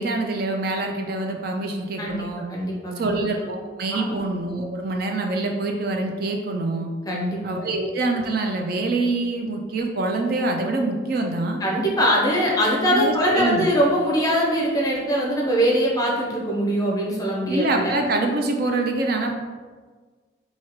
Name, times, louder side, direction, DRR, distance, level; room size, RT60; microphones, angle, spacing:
voice 1, 0.0-2.4 3.0-6.9 7.4-11.6 12.9-13.7 17.5-19.4, right 2 dB, 50° right, 3 dB, 0.4 m, -25 dB
voice 2, 2.5-3.2 3.9-4.2 7.1-7.4 11.6-18.0, equal, 20° left, -3 dB, 0.6 m, -22 dB
4.4 x 2.8 x 3.0 m, 1.5 s
head